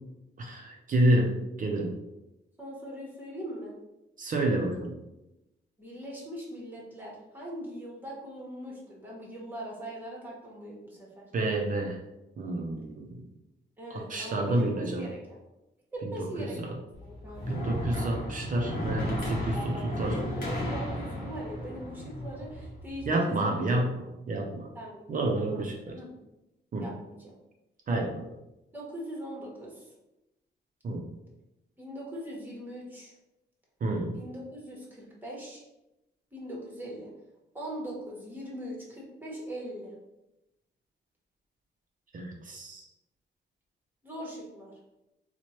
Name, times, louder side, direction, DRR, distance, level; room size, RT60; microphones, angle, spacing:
voice 1, 0.4-2.0 4.2-5.0 11.3-12.0 12.4-13.2 13.9-15.1 16.2-16.7 17.5-20.2 23.1-24.7 25.1-26.0 26.7-26.9 27.9-28.2 30.8-31.1 33.8-34.2 42.1-42.9, right 1 dB, 45° right, 1 dB, 0.5 m, -29 dB
voice 2, 2.6-3.7 5.8-11.3 13.8-15.4 15.9-17.7 19.5-23.6 24.7-25.0 25.3-26.1 26.8-27.3 28.7-29.9 31.8-33.1 34.1-35.6 36.3-37.1 37.5-39.9 44.0-44.7, equal, 10° right, -4 dB, 0.9 m, -41 dB
sound 1, 16.9-23.1, left 1 dB, 45° left, 0.9 m, -34 dB
4.3 x 2.1 x 3.0 m, 0.94 s
wide cardioid pair, 165°, 19 cm